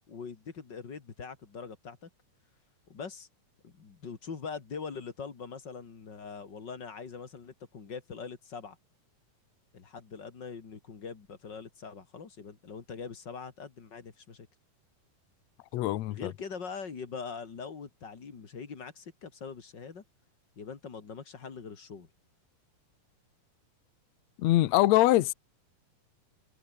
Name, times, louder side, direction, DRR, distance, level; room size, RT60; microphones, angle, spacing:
voice 1, 0.1-2.1 2.9-3.3 3.6-8.8 9.7-14.5 16.1-20.0 20.6-22.1, left 5 dB, 35° left, 2.4 m, -42 dB
voice 2, 15.7-16.3 24.4-25.3, left 16 dB, 85° left, 1.5 m, -23 dB
omnidirectional pair, 4.4 m